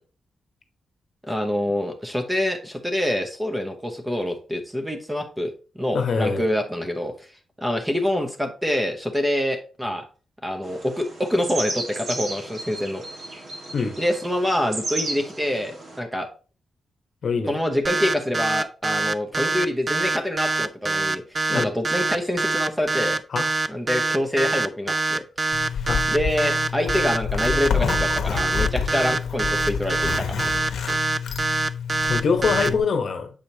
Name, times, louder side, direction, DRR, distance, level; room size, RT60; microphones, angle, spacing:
voice 1, 1.3-5.5 5.7-7.3 7.6-10.0 10.4-13.0 14.0-16.3 17.4-23.2 23.7-25.2 26.1-30.3, left 1 dB, 10° right, 0.9 m, -26 dB
voice 2, 5.9-6.5 13.7-13.9 17.2-17.5 21.5-21.7 23.3-23.4 25.8-26.0 32.1-33.3, left 5 dB, 55° left, 1.0 m, -23 dB
sound 1, 10.6-16.0, right 2 dB, 60° right, 1.7 m, -34 dB
sound 2, 17.8-32.7, right 3 dB, 30° right, 0.3 m, -24 dB
Zipper (clothing), 25.5-32.8, left 6 dB, 85° left, 1.1 m, -28 dB
7.1 x 4.9 x 2.8 m
wide cardioid pair, 150°, 0 cm